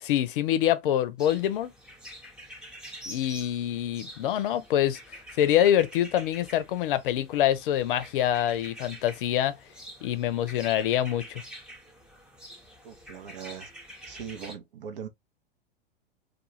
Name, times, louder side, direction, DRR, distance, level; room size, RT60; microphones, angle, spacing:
voice 1, 0.0-1.7 3.1-5.0 5.4-9.6 10.0-11.4, left 11 dB, 65° left, 0.5 m, -25 dB
sound 1, 1.2-14.5, equal, 5° right, 0.6 m, -47 dB
voice 2, 12.8-13.7 14.1-15.1, right 7 dB, 65° right, 0.7 m, -40 dB
2.3 x 2.3 x 2.8 m
hypercardioid pair, 100°, 29 cm